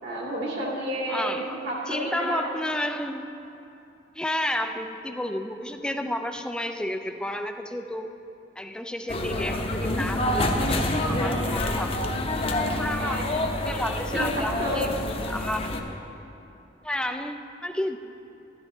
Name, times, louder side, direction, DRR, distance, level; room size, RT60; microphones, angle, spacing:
voice 1, 0.0-2.5 13.0-14.8, right 1 dB, 65° right, -4 dB, 2.4 m, -31 dB
voice 2, 1.1-3.3 4.2-8.1 8.6-12.1 12.7-14.9 15.3-15.7 16.8-18.0, left 1 dB, 5° left, 7 dB, 0.3 m, -31 dB
sound 1, 9.1-15.8, left 1 dB, 30° left, 0.7 m, -27 dB
12.5 x 12.0 x 3.2 m, 2.8 s
head